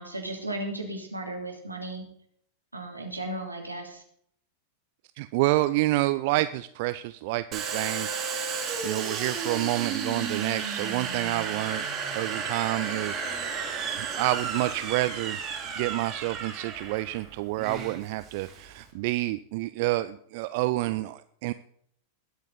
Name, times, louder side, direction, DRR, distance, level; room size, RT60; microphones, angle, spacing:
voice 1, 0.0-2.0 2.7-4.0, right 1 dB, 85° right, 2 dB, 2.8 m, -35 dB
voice 2, 5.2-8.1 8.4-11.8 12.1-13.2 13.6-15.4 15.8-21.5, right 18 dB, 50° right, 13 dB, 0.5 m, -28 dB
Domestic sounds home sounds, 7.5-18.9, right 5 dB, 30° right, 2.8 m, -33 dB
20.5 x 8.2 x 4.0 m, 0.64 s
figure-of-eight pair, 90°, 0 cm